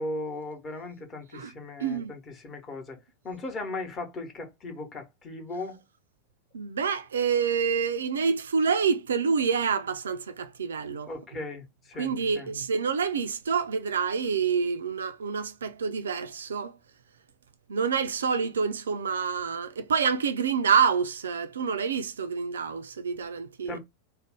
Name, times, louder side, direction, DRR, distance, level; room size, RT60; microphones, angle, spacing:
voice 1, 0.0-3.0 3.2-5.8 11.1-12.5 23.7-23.8, left 2 dB, 25° left, 0.9 m, -37 dB
voice 2, 1.8-2.1 6.5-11.1 12.0-16.8 17.7-23.8, right 6 dB, 65° right, 0.3 m, -27 dB
2.5 x 2.0 x 3.5 m
figure-of-eight pair, 90°, 0 cm